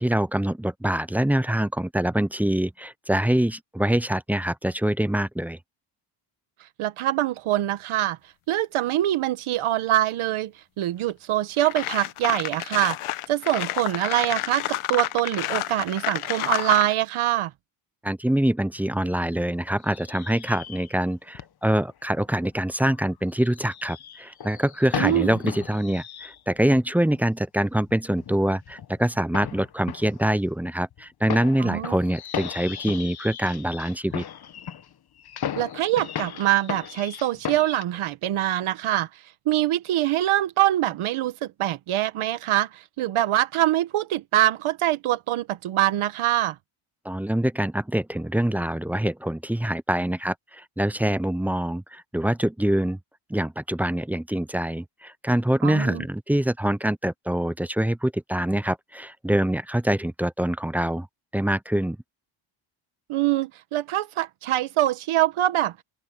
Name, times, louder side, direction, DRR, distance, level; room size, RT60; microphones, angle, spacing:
voice 1, 0.0-5.6 18.0-34.2 47.0-53.0 53.3-61.1 61.3-62.0, right 1 dB, 5° right, 0.4 m, -25 dB
voice 2, 6.8-8.2 8.5-17.5 24.9-25.3 31.6-31.9 35.6-39.1 39.4-46.6 55.6-56.0 63.1-65.8, right 14 dB, 80° right, 1.4 m, -24 dB
sound 1, 11.1-11.2 11.6-16.9, left 15 dB, 85° left, 1.0 m, -29 dB
sound 2, 18.9-19.3 19.8-21.1 21.3-21.5 21.9-26.8 27.1-27.2 27.7-37.8, left 9 dB, 50° left, 1.3 m, -37 dB
cardioid pair, 105°, 48 cm